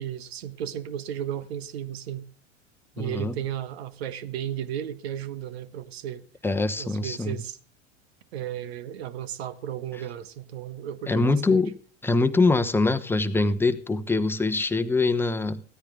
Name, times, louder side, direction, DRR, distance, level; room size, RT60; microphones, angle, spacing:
voice 1, 0.0-2.2 3.0-6.2 6.8-7.6 8.3-11.6, right 10 dB, 55° right, 1.4 m, -34 dB
voice 2, 3.0-3.4 6.4-7.4 11.1-11.8 12.0-15.6, left 3 dB, 5° left, 1.1 m, -23 dB
16.5 x 13.5 x 3.8 m
figure-of-eight pair, 85°, 36 cm